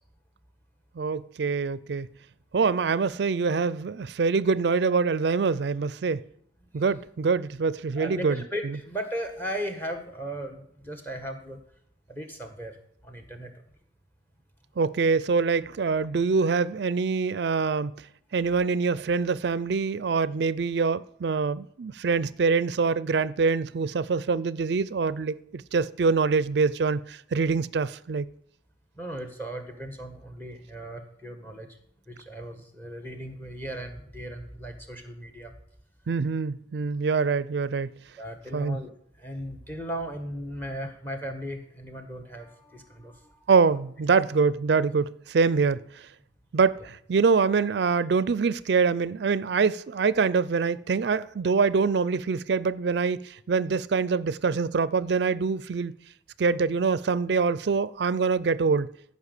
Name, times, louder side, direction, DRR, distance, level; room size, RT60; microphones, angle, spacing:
voice 1, 1.0-2.1 2.5-6.2 6.7-8.4 14.8-18.0 18.3-28.3 36.1-37.9 38.5-38.8 43.5-46.1 46.5-55.9 56.4-58.9, right 5 dB, 65° right, 0.4 m, -25 dB
voice 2, 8.0-11.6 12.1-12.8 13.0-13.5 28.9-31.8 32.1-35.6 38.2-43.5, equal, 10° left, 1.6 m, -37 dB
15.0 x 5.4 x 8.2 m
head